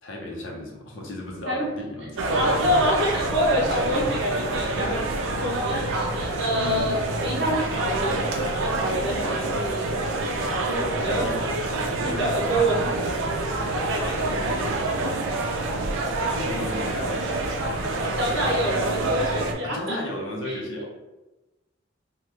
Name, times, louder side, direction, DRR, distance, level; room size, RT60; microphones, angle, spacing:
voice 1, 0.0-2.4 3.7-4.1 4.7-5.1 6.5-7.0 9.2-9.6 11.0-11.6 11.8-12.1 16.0-17.2 19.6-20.9, left 1 dB, 80° left, -1 dB, 0.7 m, -35 dB
sound 1, 2.2-19.5, right 2 dB, 85° right, 0.4 m, -27 dB
voice 2, 2.3-5.0 5.3-7.0 7.2-9.8 10.7-11.3 12.0-13.2 13.9-15.2 17.9-20.0 20.5-20.6, equal, 60° right, -2 dB, 0.8 m, -27 dB
2.9 x 2.3 x 3.4 m, 1.1 s
head